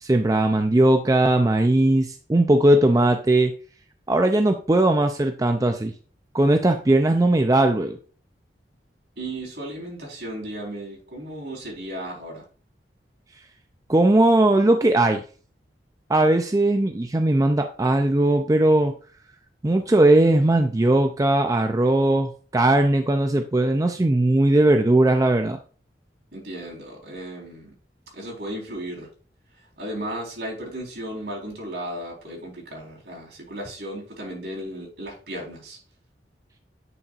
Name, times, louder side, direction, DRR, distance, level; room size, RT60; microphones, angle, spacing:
voice 1, 0.0-3.5 4.1-5.9 6.3-8.0 13.9-15.2 16.1-18.9 19.6-25.6, right 1 dB, 20° right, 6 dB, 0.4 m, -19 dB
voice 2, 9.2-12.4 26.3-27.7 28.1-29.1 29.8-35.8, right 1 dB, 65° right, -2 dB, 4.0 m, -35 dB
9.3 x 5.8 x 2.5 m, 0.40 s
head